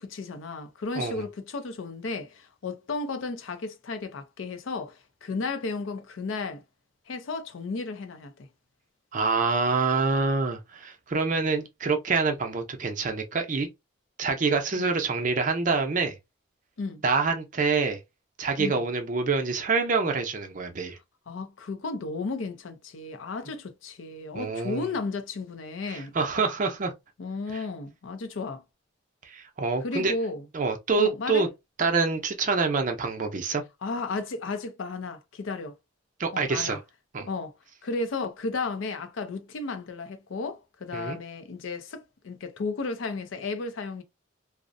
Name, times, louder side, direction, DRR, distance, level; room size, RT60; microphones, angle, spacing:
voice 1, 0.0-6.6 7.1-8.5 14.8-14.9 16.8-17.0 18.6-18.8 21.3-26.1 27.2-28.6 29.8-30.4 31.0-31.5 33.8-35.8 36.3-36.8 37.3-37.5 37.8-44.0, left 3 dB, 80° left, 0.5 m, -34 dB
voice 2, 9.1-13.7 14.2-16.2 17.0-18.0 18.4-21.0 24.3-24.9 25.9-26.9 29.3-30.1 30.5-31.5 31.8-33.6 36.2-36.8 37.1-37.3 40.9-41.2, right 4 dB, 40° right, 0.5 m, -26 dB
2.5 x 2.0 x 2.5 m
head